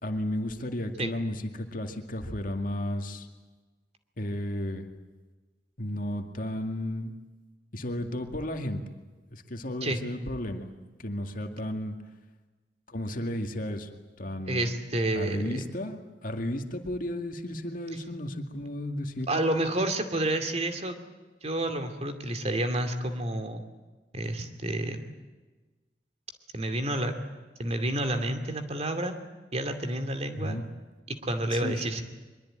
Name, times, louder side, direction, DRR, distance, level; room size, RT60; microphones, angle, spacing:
voice 1, 0.0-3.3 4.2-4.9 5.8-7.1 7.7-8.8 9.3-10.7 11.0-12.0 12.9-13.9 14.2-14.7 15.1-19.4 30.3-30.6 31.5-31.8, left 1 dB, 50° left, 5 dB, 2.2 m, -33 dB
voice 2, 14.5-15.6 19.3-21.0 21.4-23.6 24.1-25.1 26.5-27.2 27.6-29.1 29.5-30.6 31.1-32.0, right 1 dB, 35° right, 7 dB, 2.5 m, -29 dB
23.5 x 22.5 x 8.9 m, 1.2 s
head